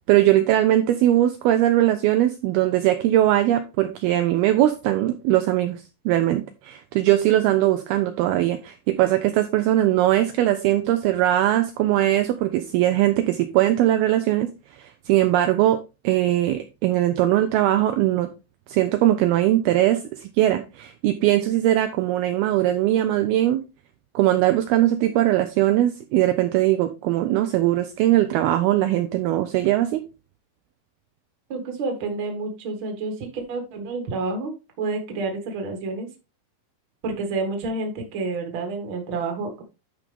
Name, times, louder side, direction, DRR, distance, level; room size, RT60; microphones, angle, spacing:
voice 1, 0.1-14.5 14.8-15.8 16.0-18.3 18.7-23.6 24.2-30.0, right 13 dB, 85° right, 8 dB, 2.2 m, -20 dB
voice 2, 31.5-34.5 34.8-36.1 37.0-39.6, right 3 dB, 45° right, 4 dB, 1.8 m, -29 dB
11.5 x 5.2 x 3.5 m, 0.28 s
omnidirectional pair, 5.1 m